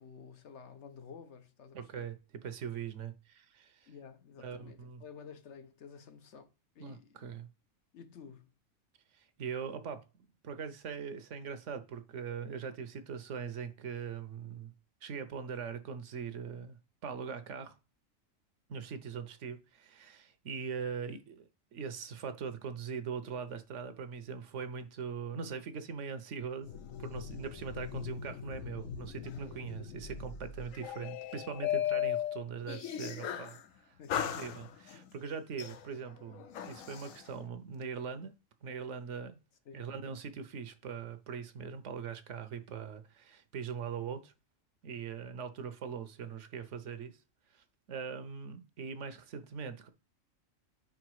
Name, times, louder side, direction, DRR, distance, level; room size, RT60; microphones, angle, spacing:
voice 1, 0.0-2.1 3.9-7.2 7.9-8.5 34.0-34.5 39.7-39.8, left 6 dB, 65° left, 1.0 m, -52 dB
voice 2, 1.7-2.1 2.4-3.9 4.4-5.0 6.8-7.5 9.1-10.0 10.4-14.7 15.0-16.8 17.0-17.7 18.7-26.7 27.0-34.0 34.2-38.3 38.6-39.4 39.7-44.3 44.8-47.1 47.5-49.9, right 6 dB, 65° right, 1.0 m, -41 dB
sound 1, 26.6-33.6 34.1-35.0 35.6-37.2, left 10 dB, 80° left, 1.1 m, -38 dB
4.9 x 4.5 x 4.7 m
omnidirectional pair, 1.4 m